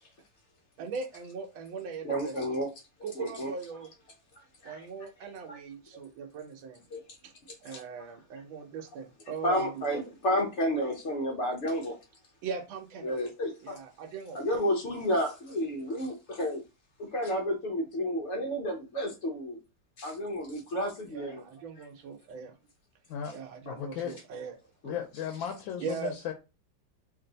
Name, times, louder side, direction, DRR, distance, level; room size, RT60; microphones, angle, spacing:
voice 1, 0.8-2.3 3.0-3.9 4.6-6.8 7.2-7.3 7.6-10.1 12.4-13.3 13.6-14.4 21.1-22.5 23.3-24.6 25.8-26.1, right 5 dB, 85° right, 1.4 m, -40 dB
voice 2, 2.0-2.7 3.0-3.5 4.6-4.8 5.5-5.6 6.9-7.1 7.5-7.8 9.4-12.0 13.0-13.5 14.3-16.6 17.0-19.6 20.0-21.4 21.8-21.9 24.8-25.0, equal, 70° left, 0.7 m, -31 dB
voice 3, 23.7-24.2 24.8-26.3, left 9 dB, 85° left, 1.3 m, -35 dB
3.2 x 2.6 x 3.8 m
omnidirectional pair, 2.1 m